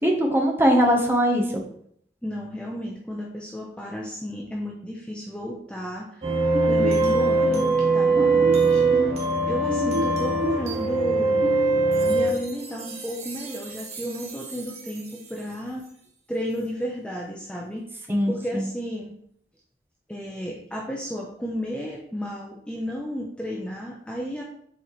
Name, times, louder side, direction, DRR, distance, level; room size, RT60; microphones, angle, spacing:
voice 1, 0.0-1.6 18.1-18.6, equal, 15° right, 0 dB, 1.0 m, -21 dB
voice 2, 2.2-6.2 6.6-8.8 9.4-11.4 12.1-15.8 16.3-17.9 18.3-19.1 20.1-24.4, equal, 5° left, -2 dB, 0.6 m, -32 dB
sound 1, 6.2-15.1, right 3 dB, 40° right, 1.2 m, -22 dB
7.1 x 4.3 x 3.1 m, 0.69 s
head